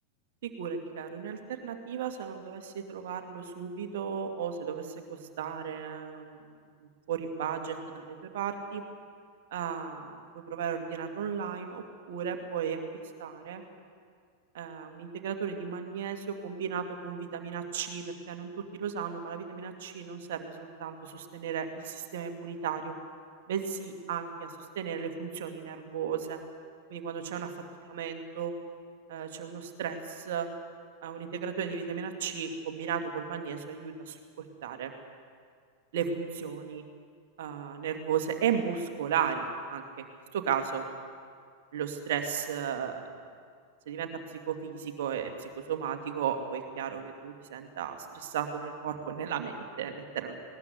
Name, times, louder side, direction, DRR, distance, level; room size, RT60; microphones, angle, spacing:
voice 1, 0.4-6.5 7.1-8.8 9.5-12.8 13.2-13.6 14.5-22.9 23.5-24.5 24.7-26.4 26.9-27.5 27.8-28.5 29.1-30.5 31.0-34.9 35.9-36.8 37.4-39.8 40.3-40.8 41.7-43.0 43.9-44.1 44.5-50.4, right 7 dB, 55° right, 5 dB, 2.3 m, -35 dB
20.0 x 19.0 x 8.1 m, 2.1 s
figure-of-eight pair, 90°, 0 cm